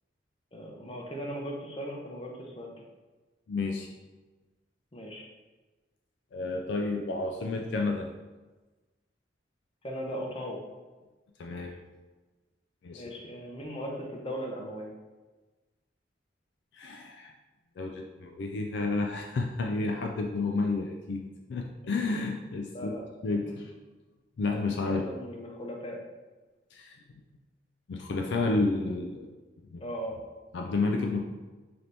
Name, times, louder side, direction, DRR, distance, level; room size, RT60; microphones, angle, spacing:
voice 1, 0.5-2.7 4.9-5.3 9.8-10.6 12.9-14.9 22.6-23.0 24.9-26.0 29.8-30.2, equal, 30° left, 0 dB, 0.7 m, -38 dB
voice 2, 3.5-3.9 6.3-8.1 11.4-11.8 12.8-13.0 16.7-17.3 17.8-21.2 21.5-22.9 23.2-23.8 24.4-25.0 26.7-27.0 27.9-29.3 29.7-29.8 30.5-31.2, left 3 dB, 70° left, 2 dB, 0.3 m, -30 dB
3.3 x 2.9 x 3.9 m, 1.2 s
head